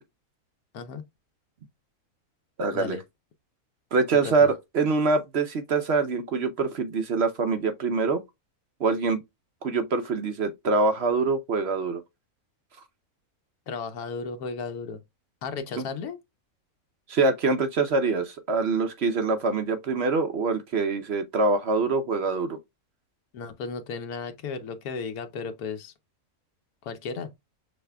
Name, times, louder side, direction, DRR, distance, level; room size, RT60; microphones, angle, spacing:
voice 1, 2.6-3.0 3.9-8.2 8.8-9.2 9.6-12.0 15.8-15.9 17.1-22.6, right 4 dB, 55° right, 0.8 m, -24 dB
voice 2, 13.7-15.0 15.4-16.2 23.3-25.9 26.8-27.3, left 5 dB, 90° left, 1.3 m, -34 dB
6.4 x 3.4 x 2.2 m
omnidirectional pair, 1.5 m